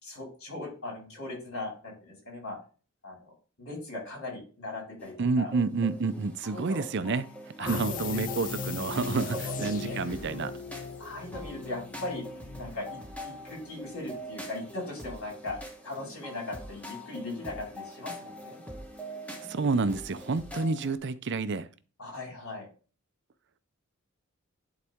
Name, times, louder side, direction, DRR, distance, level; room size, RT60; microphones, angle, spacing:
voice 1, 0.0-2.6 3.0-3.2 3.6-5.5 6.5-6.8 7.6-8.5 9.3-10.0 11.0-12.3 12.6-18.6 22.0-22.7, left 2 dB, 65° left, 4.6 m, -39 dB
sound 1, 5.0-21.0, equal, 5° left, 1.1 m, -44 dB
voice 2, 5.2-7.3 7.6-9.4 9.6-10.5 19.5-21.7, right 4 dB, 50° right, 0.5 m, -29 dB
sound 2, 7.7-14.5 14.8-14.9, left 6 dB, 35° left, 0.4 m, -39 dB
11.0 x 4.1 x 3.6 m
head